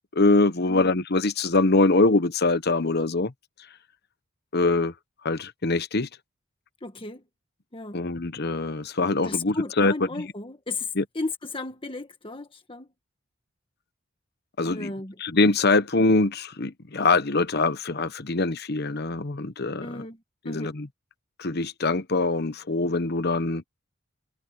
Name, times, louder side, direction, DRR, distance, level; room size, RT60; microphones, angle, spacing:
voice 1, 0.2-3.3 4.5-4.9 5.2-6.1 7.9-9.9 11.0-11.1 14.6-14.9 15.2-20.0 20.4-20.9 21.4-23.6, left 3 dB, 55° left, 1.1 m, -23 dB
voice 2, 6.8-7.2 7.7-8.0 9.2-12.9 14.6-15.2 19.8-20.2 20.4-20.8, left 3 dB, 25° left, 1.6 m, -34 dB
head